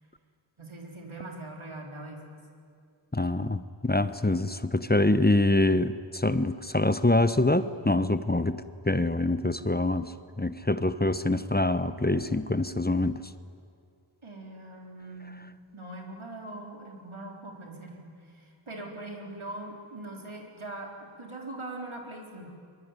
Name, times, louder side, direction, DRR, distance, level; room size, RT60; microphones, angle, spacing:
voice 1, 0.6-2.2 14.2-22.5, right 2 dB, 85° right, 0 dB, 4.3 m, -41 dB
voice 2, 3.1-10.1 10.4-13.2, left 2 dB, 20° left, 12 dB, 0.9 m, -25 dB
23.5 x 23.0 x 9.8 m, 2.3 s
wide cardioid pair, 45°, 47 cm